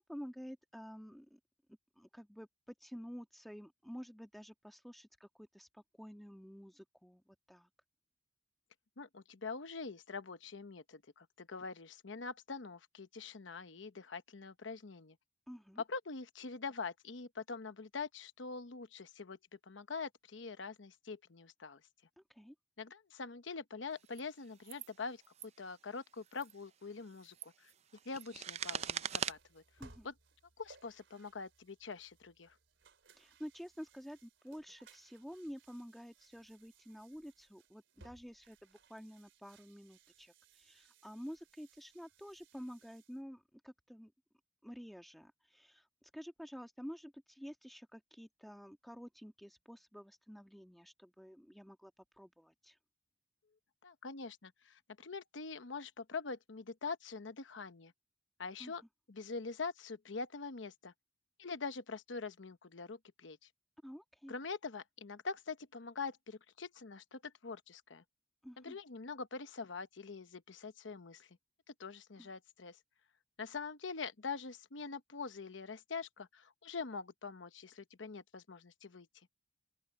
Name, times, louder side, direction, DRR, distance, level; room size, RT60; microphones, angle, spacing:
voice 1, 0.0-1.4 2.0-2.5 2.8-7.7 15.5-15.8 22.2-22.5 29.8-30.1 33.2-44.1 44.6-51.9 52.2-52.8 58.6-58.7 63.8-64.3 68.4-68.8 72.2-72.3, equal, ahead, 1.7 m, -50 dB
voice 2, 9.0-15.2 15.9-19.4 19.7-21.8 22.8-25.2 25.6-27.5 28.1-29.6 30.0-30.1 30.6-32.5 53.8-57.9 58.4-58.8 59.1-60.9 61.4-63.4 64.3-68.0 68.6-71.3 71.8-72.8 73.4-79.1, left 4 dB, 80° left, 0.9 m, -44 dB
sound 1, 24.1-24.2 24.6-24.9 25.2-25.5 26.3-26.5 27.1-29.3, right 8 dB, 35° right, 0.5 m, -41 dB
sound 2, 28.5-43.2, right 3 dB, 80° right, 3.3 m, -65 dB
open air
head